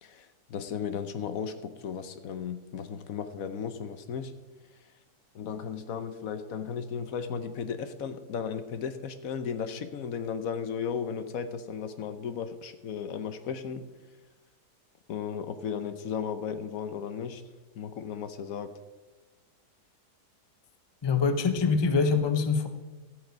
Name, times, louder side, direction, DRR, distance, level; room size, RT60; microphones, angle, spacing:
voice 1, 0.0-4.3 5.3-13.9 15.1-17.4 17.8-18.7, left 7 dB, 65° left, 10 dB, 1.1 m, -35 dB
voice 2, 21.0-22.7, left 5 dB, 45° left, 9 dB, 0.3 m, -24 dB
13.5 x 7.9 x 5.1 m, 1.2 s
omnidirectional pair, 1.8 m